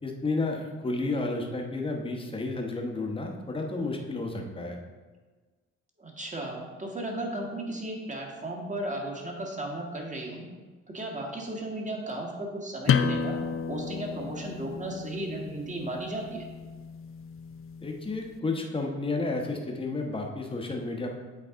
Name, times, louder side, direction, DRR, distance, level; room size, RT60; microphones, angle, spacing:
voice 1, 0.0-4.8 17.8-21.2, left 3 dB, 15° left, 1 dB, 1.0 m, -31 dB
voice 2, 6.0-10.5 10.9-13.4 13.7-16.4, right 1 dB, 25° right, 0 dB, 1.5 m, -35 dB
sound 1, 12.9-18.3, left 6 dB, 45° left, 0.4 m, -32 dB
8.1 x 4.0 x 3.7 m, 1.3 s
cardioid pair, 90°, 30 cm